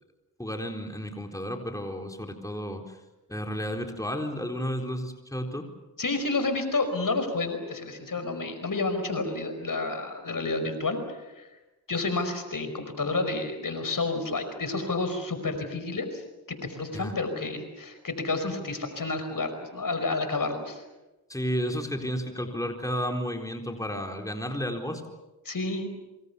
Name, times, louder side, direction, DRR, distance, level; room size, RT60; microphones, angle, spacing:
voice 1, 0.4-3.0 3.3-5.7 16.9-17.1 21.3-25.0, equal, 10° left, 3 dB, 4.1 m, -32 dB
voice 2, 6.0-11.0 11.4-11.5 11.9-16.2 16.6-20.8 25.5-25.9, left 3 dB, 60° left, 8 dB, 5.2 m, -30 dB
27.0 x 25.5 x 7.0 m, 1.1 s
cardioid pair, 45°, 38 cm